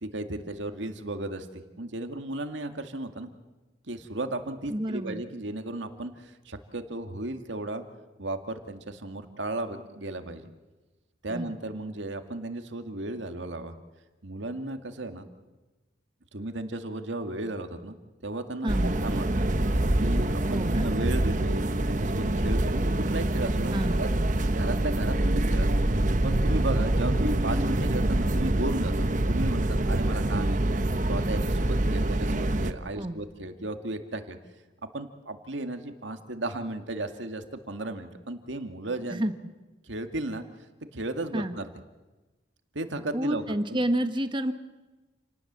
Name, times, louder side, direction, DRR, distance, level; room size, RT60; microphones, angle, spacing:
voice 1, 0.0-3.3 3.9-7.8 8.2-10.5 11.2-13.7 14.2-15.3 16.3-19.3 20.0-24.1 24.5-25.7 26.2-30.6 31.1-34.4 34.9-39.2 39.8-40.4 40.9-41.7 42.7-43.8, right 2 dB, 75° right, 7 dB, 2.1 m, -35 dB
voice 2, 4.7-5.2 11.3-11.5 18.6-19.0 20.5-20.9 23.7-24.1 33.0-33.2 39.1-39.3 41.3-41.6 43.1-44.5, right 1 dB, 25° right, 8 dB, 1.4 m, -29 dB
sound 1, 18.7-32.7, right 1 dB, 40° right, 1.1 m, -25 dB
29.0 x 19.0 x 7.5 m, 1.2 s
head